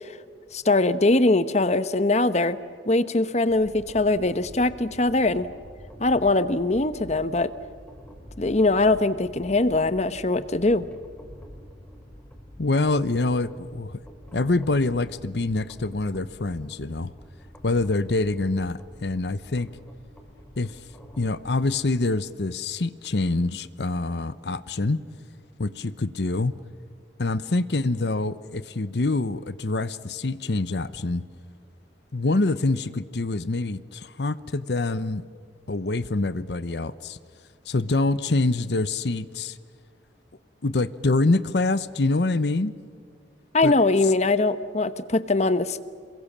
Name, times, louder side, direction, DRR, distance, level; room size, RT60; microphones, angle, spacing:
voice 1, 0.5-2.6 2.9-5.5 6.0-7.5 8.4-10.9 43.5-45.8, left 2 dB, 40° left, 13 dB, 1.0 m, -22 dB
sound 1, 3.5-22.2, equal, 10° left, 4.1 m, -47 dB
voice 2, 12.6-14.0 14.3-17.1 17.6-19.7 20.6-20.8 21.2-25.0 25.6-26.5 27.2-31.2 32.1-35.2 35.7-37.2 37.7-39.6 40.6-42.7 43.6-43.7, left 2 dB, 70° left, 15 dB, 0.9 m, -25 dB
27.5 x 22.5 x 7.4 m, 2.1 s
head